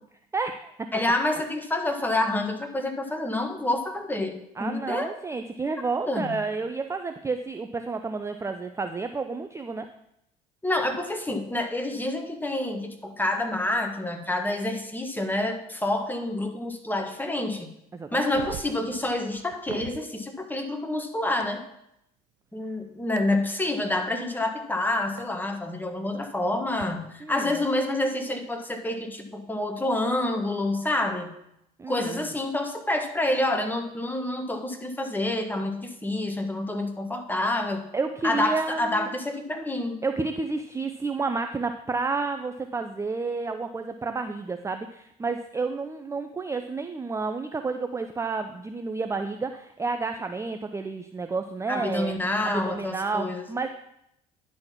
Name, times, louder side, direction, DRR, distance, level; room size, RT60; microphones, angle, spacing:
voice 1, 0.3-0.9 4.6-9.9 17.9-18.4 27.2-27.6 31.8-32.3 37.9-39.1 40.0-52.1 52.4-53.7, right 4 dB, 15° right, 7 dB, 0.5 m, -30 dB
voice 2, 0.9-5.1 6.1-6.4 10.6-17.7 18.1-21.6 22.5-31.3 31.9-37.9 38.2-40.0 51.7-53.4, left 1 dB, 10° left, 4 dB, 1.4 m, -28 dB
sound 1, 18.2-20.0 21.4-21.5 23.2-23.3 25.2-25.3 26.7-26.8, right 15 dB, 75° right, 0.5 m, -41 dB
10.5 x 4.2 x 5.8 m, 0.79 s
hypercardioid pair, 70°, 19 cm